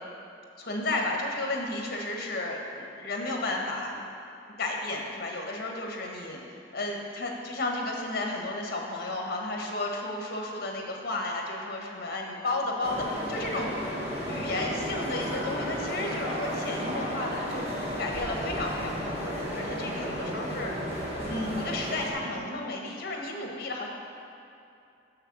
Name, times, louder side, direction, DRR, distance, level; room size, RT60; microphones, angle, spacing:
voice 1, 0.6-4.0 4.6-6.4 6.7-13.7 14.3-17.7 18.0-20.7 21.3-23.9, left 2 dB, 55° left, 1 dB, 1.2 m, -33 dB
sound 1, 12.8-22.1, equal, 35° right, 1.4 m, -33 dB
6.9 x 6.6 x 6.1 m, 2.6 s
head